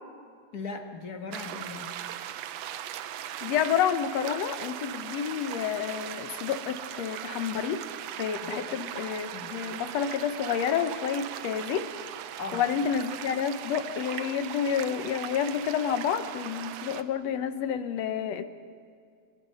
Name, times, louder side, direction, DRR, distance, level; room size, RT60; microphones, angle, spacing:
voice 1, 0.5-1.9 8.4-8.7 9.3-9.5 12.4-12.6, left 4 dB, 40° left, 4 dB, 1.5 m, -38 dB
sound 1, 1.3-17.0, right 11 dB, 70° right, 1.7 m, -39 dB
voice 2, 3.4-7.8 8.2-11.9 12.5-18.4, left 8 dB, 70° left, 10 dB, 1.8 m, -29 dB
28.0 x 22.5 x 5.6 m, 2.2 s
omnidirectional pair, 3.6 m